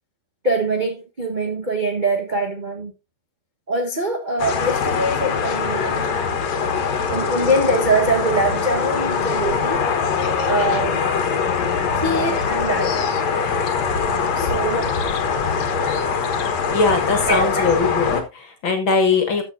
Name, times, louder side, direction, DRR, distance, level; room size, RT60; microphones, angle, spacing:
voice 1, 0.4-2.9 3.7-6.2 7.1-9.8 10.4-11.0 12.0-12.9 14.3-14.9 17.3-17.7, right 1 dB, 40° right, 0.6 m, -23 dB
sound 1, 4.4-18.2, left 6 dB, 70° left, 2.6 m, -22 dB
voice 2, 16.7-19.4, left 4 dB, 45° left, 2.4 m, -20 dB
14.0 x 7.2 x 2.7 m
omnidirectional pair, 3.3 m